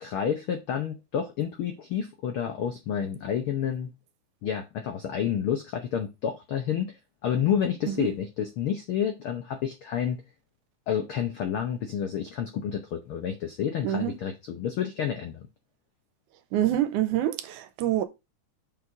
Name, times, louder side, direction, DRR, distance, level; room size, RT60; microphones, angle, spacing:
voice 1, 0.0-3.9 4.4-7.0 7.2-10.2 10.9-15.5, left 8 dB, 80° left, 1.2 m, -29 dB
voice 2, 16.5-18.0, right 12 dB, 85° right, 2.2 m, -26 dB
6.0 x 4.7 x 4.7 m
omnidirectional pair, 3.5 m